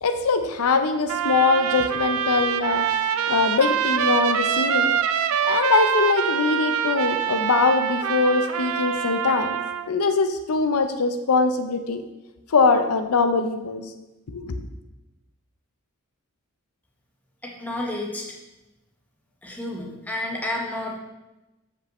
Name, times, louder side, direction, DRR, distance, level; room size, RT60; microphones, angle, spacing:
voice 1, 0.0-2.8 3.3-4.9 5.4-9.5 9.9-12.0 12.5-13.8 14.3-14.6, left 4 dB, 90° left, 8 dB, 0.6 m, -22 dB
Trumpet, 1.1-9.9, right 8 dB, 70° right, 0.5 m, -25 dB
voice 2, 17.4-18.3 19.4-21.0, left 1 dB, 5° left, -2 dB, 1.2 m, -30 dB
13.0 x 5.3 x 3.1 m, 1.0 s
head